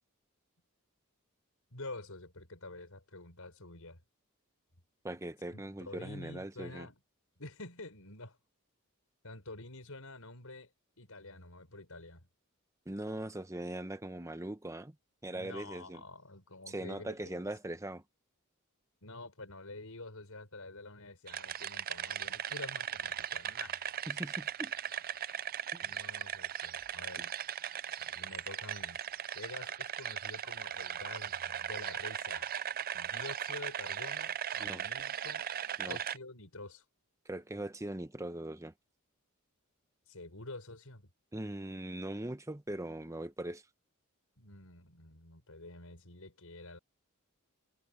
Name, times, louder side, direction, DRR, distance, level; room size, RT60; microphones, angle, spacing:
voice 1, 1.7-4.0 5.5-7.0 7.4-8.4 9.2-10.7 11.0-12.3 15.3-17.4 19.0-23.9 25.8-27.3 28.0-29.0 29.3-32.5 32.9-35.5 35.9-36.8 40.1-41.1 44.4-46.8, left 2 dB, 70° left, 6.2 m, -48 dB
voice 2, 5.0-6.9 12.9-14.9 15.2-16.0 16.7-18.0 24.1-24.7 25.7-25.9 27.2-27.3 34.6-34.8 35.8-36.0 37.3-38.7 41.3-43.6, right 1 dB, 15° right, 1.0 m, -40 dB
sound 1, 21.3-36.2, right 9 dB, 40° right, 0.5 m, -38 dB
head